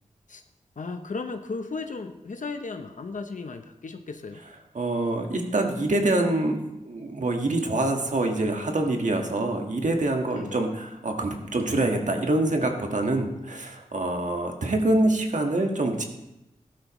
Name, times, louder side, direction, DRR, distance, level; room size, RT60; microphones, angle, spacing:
voice 1, 0.8-4.4 10.3-10.6, left 4 dB, 70° left, 6 dB, 0.7 m, -35 dB
voice 2, 4.7-6.6 6.8-16.0, right 2 dB, 65° right, 3 dB, 1.6 m, -25 dB
14.0 x 12.0 x 3.1 m, 0.91 s
wide cardioid pair, 70°, 14 cm